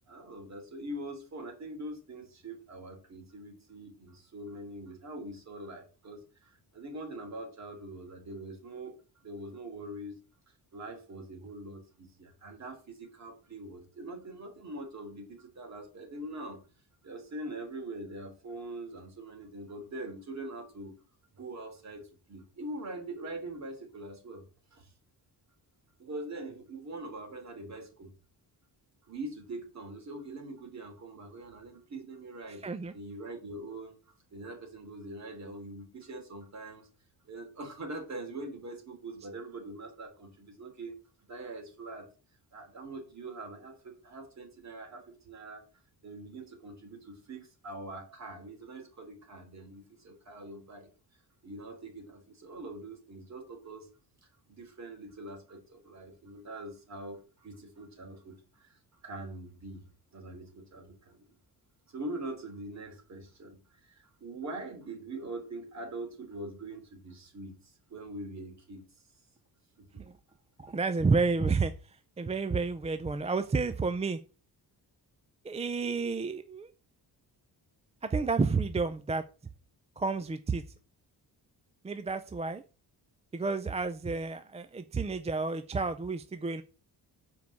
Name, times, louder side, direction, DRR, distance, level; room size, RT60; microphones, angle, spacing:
voice 1, 0.1-8.9 9.2-10.2 10.7-16.6 17.0-20.9 21.3-24.4 24.7-24.9 26.0-28.1 29.0-32.7 32.9-36.9 37.2-40.9 41.3-42.1 42.5-45.6 46.0-50.9 51.4-53.9 54.2-59.8 60.1-61.2 61.9-68.8 69.9-70.0, right 2 dB, 40° right, 3 dB, 3.3 m, -43 dB
voice 2, 32.6-32.9 70.0-70.1 70.6-71.7 72.2-74.2 75.4-76.7 78.0-79.2 80.0-80.6 81.8-82.6 83.3-86.6, right 4 dB, 15° right, 10 dB, 0.4 m, -30 dB
7.4 x 4.7 x 7.0 m, 0.34 s
wide cardioid pair, 150°, 40 cm